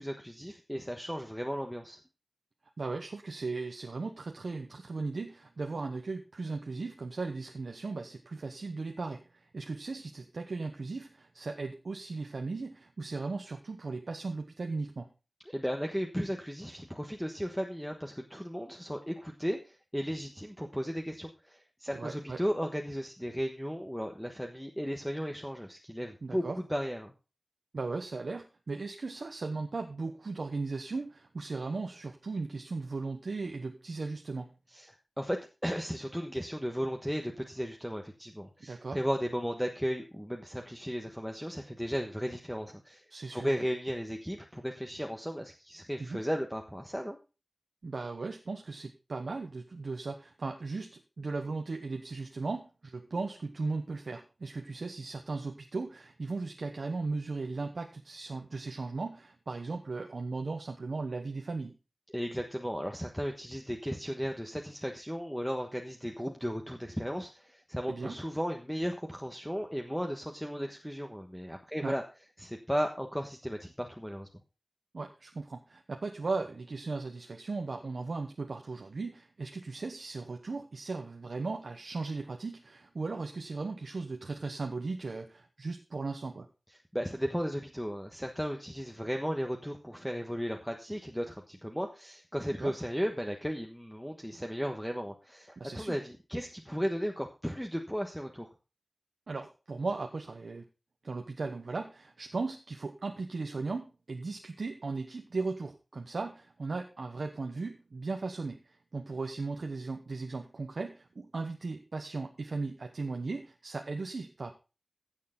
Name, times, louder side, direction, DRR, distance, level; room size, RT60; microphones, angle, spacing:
voice 1, 0.0-2.0 15.5-27.1 34.7-43.0 43.3-47.2 62.1-72.0 72.4-74.3 86.9-98.5, equal, ahead, 3 dB, 1.3 m, -35 dB
voice 2, 2.8-15.1 21.9-22.4 26.2-26.6 27.7-34.5 38.6-39.0 43.1-43.6 46.0-46.2 47.8-61.8 67.9-68.2 71.8-71.9 74.9-86.5 92.6-92.7 95.6-96.0 99.3-100.7 101.0-114.5, right 3 dB, 90° right, 4 dB, 1.0 m, -37 dB
15.5 x 6.7 x 3.9 m, 0.31 s
wide cardioid pair, 65°, 0 cm